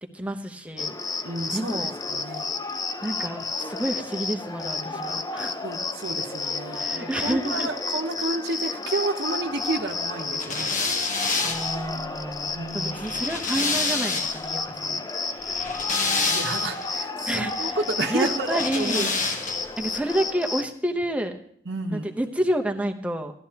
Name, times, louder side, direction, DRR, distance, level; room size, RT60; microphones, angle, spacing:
voice 1, 0.1-0.9 1.5-2.0 3.0-5.6 6.7-7.7 11.4-15.1 17.3-17.8 18.1-19.1 19.8-21.3 21.9-23.3, right 1 dB, 10° right, 4 dB, 0.8 m, -29 dB
Cricket, 0.8-20.6, left 4 dB, 20° left, 0.5 m, -31 dB
voice 2, 1.2-2.5 5.6-10.9 12.5-13.2 16.3-19.1 21.7-22.1, right 2 dB, 70° right, 2 dB, 0.9 m, -31 dB
sound 1, 10.4-14.5 15.4-16.9 18.5-19.8, left 3 dB, 45° left, 1.0 m, -28 dB
15.5 x 11.5 x 2.9 m, 0.62 s
head